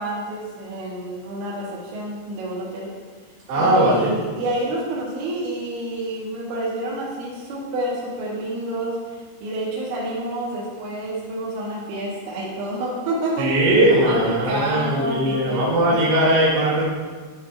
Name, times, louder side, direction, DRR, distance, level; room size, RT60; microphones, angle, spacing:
voice 1, 0.0-2.9 3.6-9.0 9.4-16.1, right 1 dB, 75° right, -5 dB, 3.4 m, -28 dB
voice 2, 3.5-4.1 13.4-16.8, right 1 dB, 55° right, -7 dB, 2.5 m, -19 dB
12.5 x 4.5 x 2.3 m, 1.4 s
omnidirectional pair, 5.5 m